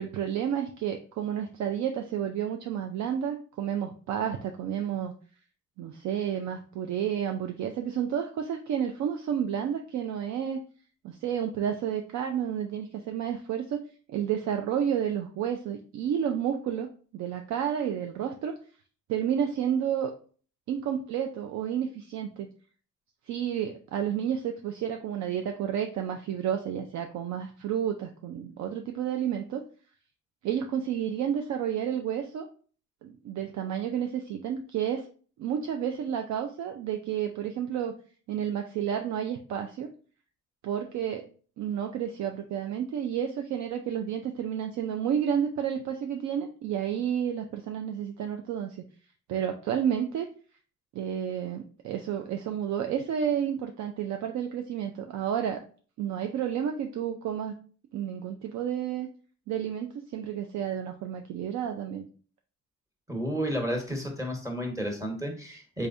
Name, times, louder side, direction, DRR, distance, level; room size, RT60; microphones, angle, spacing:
voice 1, 0.0-5.1 5.8-10.6 11.0-13.8 14.1-16.9 17.1-18.6 19.1-20.1 20.7-22.5 23.3-29.6 30.4-32.5 33.0-35.1 35.4-37.9 38.3-39.9 40.6-41.3 41.6-48.8 49.3-50.3 50.9-55.6 56.0-57.5 57.9-59.1 59.5-62.1, right 9 dB, 65° right, 5 dB, 0.5 m, -31 dB
voice 2, 63.1-65.9, equal, 10° right, 1 dB, 1.1 m, -31 dB
3.4 x 3.3 x 2.6 m, 0.41 s
cardioid pair, 90°, 30 cm